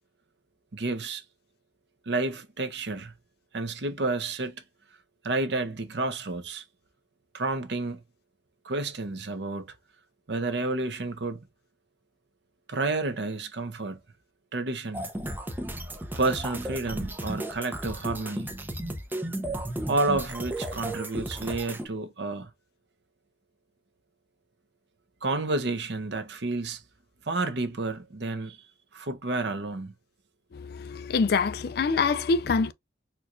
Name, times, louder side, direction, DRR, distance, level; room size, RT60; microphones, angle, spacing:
voice 1, 0.7-1.2 2.1-3.1 3.5-4.6 5.2-6.6 7.3-8.0 8.6-9.7 10.3-11.4 12.7-14.0 14.5-15.1 16.2-18.5 19.9-22.5 25.2-26.8 27.3-28.6 28.9-29.9, right 3 dB, 60° right, 0.7 m, -30 dB
sound 1, 14.9-21.9, right 1 dB, 10° right, 0.5 m, -34 dB
voice 2, 30.5-32.7, left 4 dB, 55° left, 0.3 m, -25 dB
4.4 x 2.3 x 2.5 m
head